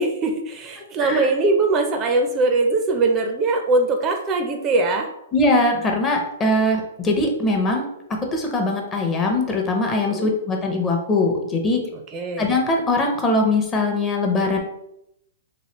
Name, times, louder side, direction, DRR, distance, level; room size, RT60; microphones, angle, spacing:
voice 1, 0.0-5.1 9.9-10.3 12.1-12.5, right 3 dB, 25° right, 4 dB, 0.4 m, -21 dB
voice 2, 5.3-11.8 12.4-14.6, left 2 dB, 20° left, 1 dB, 0.7 m, -21 dB
3.1 x 2.8 x 2.9 m, 0.81 s
hypercardioid pair, 135°, 0 cm